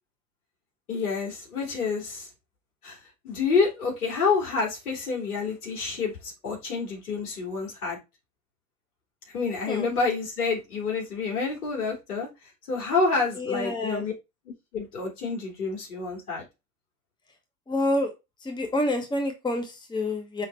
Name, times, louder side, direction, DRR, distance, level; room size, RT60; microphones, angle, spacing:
voice 1, 0.9-2.3 2.8-3.0 3.2-8.0 9.3-12.3 12.7-14.1 14.7-16.4, left 4 dB, 70° left, 3.3 m, -28 dB
voice 2, 13.4-14.0 17.7-18.1 18.4-20.5, left 1 dB, 10° left, 1.1 m, -28 dB
5.7 x 3.8 x 4.4 m
figure-of-eight pair, 85°, 45 cm